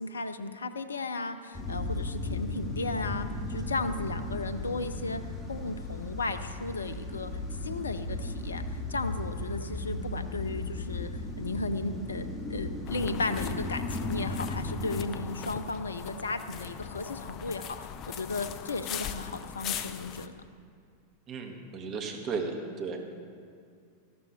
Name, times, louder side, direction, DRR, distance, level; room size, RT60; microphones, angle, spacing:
voice 1, 0.0-5.2 5.5-7.3 7.6-20.4, left 3 dB, 85° left, 11 dB, 0.7 m, -35 dB
sound 1, 1.5-15.1, left 2 dB, 20° left, 3.0 m, -36 dB
sound 2, 12.9-20.3, left 8 dB, 40° left, 0.8 m, -40 dB
voice 2, 21.3-23.0, right 4 dB, 35° right, 3 dB, 2.1 m, -35 dB
18.5 x 14.0 x 3.4 m, 2.2 s
hypercardioid pair, 95°, 0 cm